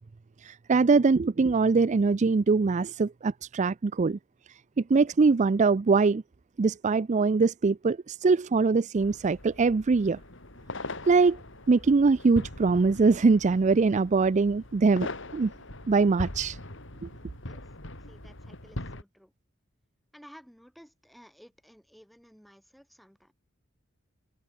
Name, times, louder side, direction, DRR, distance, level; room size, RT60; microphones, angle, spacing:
voice 1, 0.4-4.2 4.9-6.2 6.6-10.2 11.1-11.4 11.7-15.5 15.9-16.6 17.0-17.1, right 4 dB, 35° right, 0.4 m, -23 dB
sound 1, 9.0-19.0, left 1 dB, 65° left, 4.5 m, -41 dB
voice 2, 18.1-19.3 20.1-23.3, equal, ahead, 3.2 m, -54 dB
head